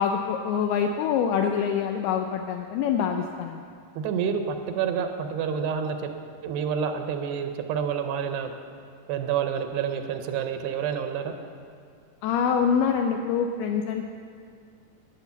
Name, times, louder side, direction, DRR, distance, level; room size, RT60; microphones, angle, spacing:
voice 1, 0.0-3.6 12.2-14.0, left 7 dB, 80° left, 5 dB, 2.4 m, -25 dB
voice 2, 4.0-6.1 6.4-8.5 9.1-11.3, right 7 dB, 80° right, 6 dB, 2.8 m, -28 dB
11.5 x 9.1 x 6.9 m, 2.3 s
omnidirectional pair, 4.8 m